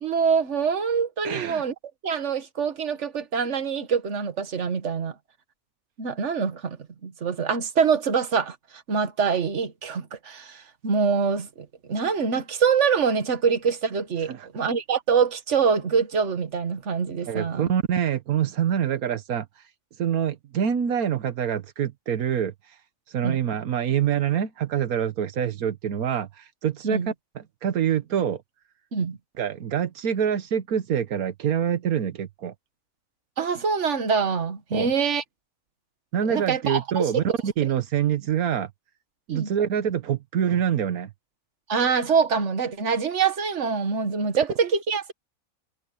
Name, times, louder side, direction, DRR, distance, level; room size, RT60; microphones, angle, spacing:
voice 1, 0.0-1.7 2.0-5.1 6.0-8.6 8.9-17.7 23.2-23.4 26.8-27.1 28.9-29.2 33.4-35.2 36.3-37.1 39.3-39.5 41.7-45.1, right 6 dB, 55° right, 1.8 m, -25 dB
voice 2, 1.2-1.6 14.3-14.5 17.3-19.5 20.0-22.5 23.1-27.0 27.3-28.4 29.4-32.5 34.7-34.9 36.1-38.7 39.3-41.1, right 9 dB, 90° right, 1.5 m, -25 dB
omnidirectional pair, 1.5 m